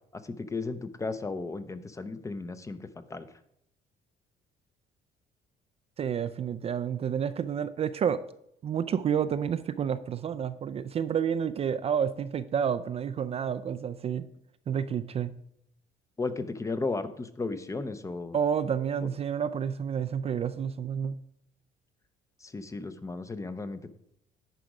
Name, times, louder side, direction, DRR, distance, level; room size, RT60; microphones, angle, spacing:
voice 1, 0.1-3.3 16.2-18.4 19.0-19.1 22.4-23.9, left 3 dB, 20° left, 11 dB, 0.6 m, -35 dB
voice 2, 6.0-8.2 8.6-14.3 14.7-15.3 18.3-21.1, right 8 dB, 35° right, 12 dB, 0.4 m, -29 dB
10.0 x 5.0 x 4.8 m, 0.74 s
cardioid pair, 110°, 17 cm